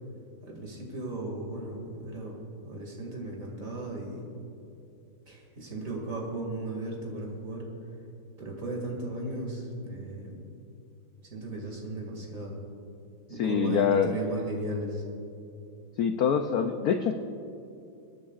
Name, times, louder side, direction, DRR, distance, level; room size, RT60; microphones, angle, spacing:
voice 1, 0.4-4.3 5.3-7.6 8.4-10.4 11.3-12.6 13.3-15.0, right 2 dB, 40° right, -1 dB, 2.6 m, -36 dB
voice 2, 13.4-14.1 16.0-17.1, left 7 dB, 80° left, 6 dB, 0.8 m, -25 dB
26.0 x 10.0 x 2.4 m, 2.6 s
omnidirectional pair, 2.2 m